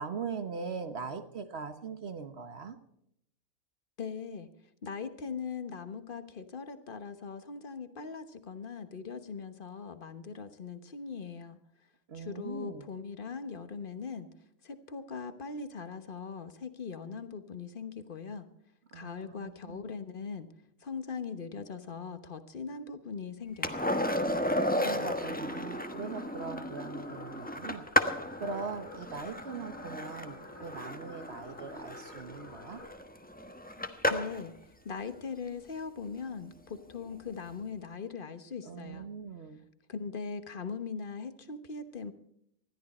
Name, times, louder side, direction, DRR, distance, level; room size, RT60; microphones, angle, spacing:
voice 1, 0.0-2.8 12.1-12.9 18.9-19.8 24.5-32.8 38.6-39.6, right 5 dB, 50° right, 10 dB, 1.4 m, -41 dB
voice 2, 4.0-4.5 4.8-11.6 12.1-14.3 14.6-18.4 18.9-20.5 20.8-23.9 34.1-34.6 34.8-39.1 39.9-42.1, left 5 dB, 40° left, 10 dB, 1.2 m, -40 dB
Skateboard, 23.6-34.5 37.1-37.2, left 1 dB, 5° left, 1.0 m, -33 dB
sound 1, 24.4-32.9, left 2 dB, 75° left, 3.7 m, -53 dB
20.5 x 13.5 x 4.3 m, 0.75 s
omnidirectional pair, 1.5 m